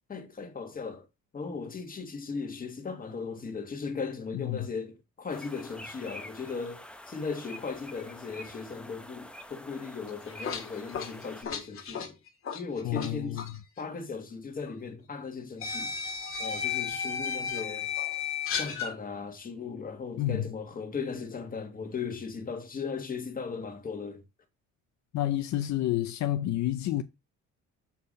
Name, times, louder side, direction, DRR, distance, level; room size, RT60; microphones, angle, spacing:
voice 1, 0.1-1.1 1.3-12.2 12.5-13.4 13.8-15.9 16.4-17.9 18.5-24.2, left 5 dB, 30° left, 1.6 m, -37 dB
voice 2, 4.3-4.7 12.8-13.4 20.2-20.4 25.1-27.0, left 13 dB, 65° left, 0.6 m, -29 dB
sound 1, 5.3-11.4, left 1 dB, 5° left, 0.7 m, -47 dB
sound 2, 10.1-13.1 13.4-13.6 14.7-14.8 15.6-18.9, left 7 dB, 45° left, 1.8 m, -33 dB
7.1 x 4.5 x 5.1 m
cardioid pair, 140°, 31 cm